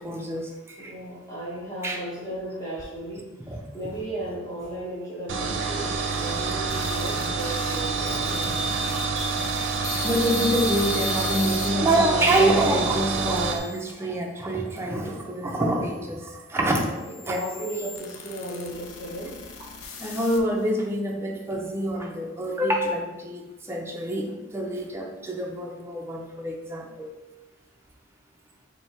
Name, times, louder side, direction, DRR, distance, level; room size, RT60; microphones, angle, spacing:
voice 1, 0.0-0.9 1.8-2.0 3.5-3.6 8.7-8.8 10.0-16.9 17.3-17.4 20.0-27.1, right 1 dB, 15° right, 0 dB, 0.4 m, -26 dB
voice 2, 0.8-9.0 16.8-19.3, right 1 dB, 15° left, -9 dB, 0.9 m, -35 dB
sound 1, 5.3-13.6, right 4 dB, 65° right, 0.5 m, -27 dB
sound 2, 5.9-11.7 12.4-13.9 14.7-20.7, left 6 dB, 85° left, 0.5 m, -39 dB
3.3 x 2.7 x 4.2 m, 1.1 s
head